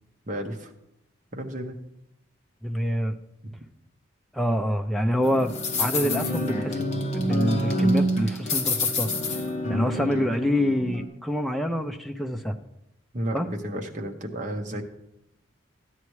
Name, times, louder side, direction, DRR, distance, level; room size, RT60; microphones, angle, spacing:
voice 1, 0.3-0.7 1.3-1.8 3.4-3.6 13.1-14.8, right 1 dB, 40° right, 2 dB, 1.0 m, -33 dB
voice 2, 2.6-3.2 4.3-5.5 5.8-9.1 9.7-12.6 13.3-13.5, equal, ahead, 5 dB, 0.4 m, -26 dB
sound 1, 5.2-11.0, left 1 dB, 35° left, 1.0 m, -27 dB
13.0 x 9.4 x 3.1 m, 0.82 s
head